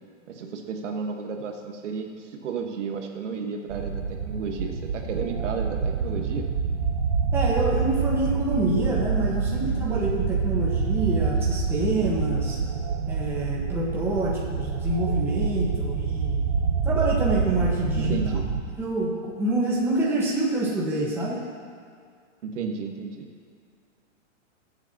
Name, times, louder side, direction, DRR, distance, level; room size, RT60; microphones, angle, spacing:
voice 1, 0.3-6.5 18.0-18.4 22.4-23.3, right 5 dB, 70° right, 3 dB, 1.5 m, -33 dB
sound 1, 3.7-18.6, right 5 dB, 25° right, 0.5 m, -27 dB
voice 2, 7.3-12.6 13.1-16.4 16.8-18.4 18.8-21.4, right 2 dB, 5° right, -6 dB, 1.3 m, -27 dB
20.0 x 8.0 x 2.9 m, 2.1 s
hypercardioid pair, 160°, 38 cm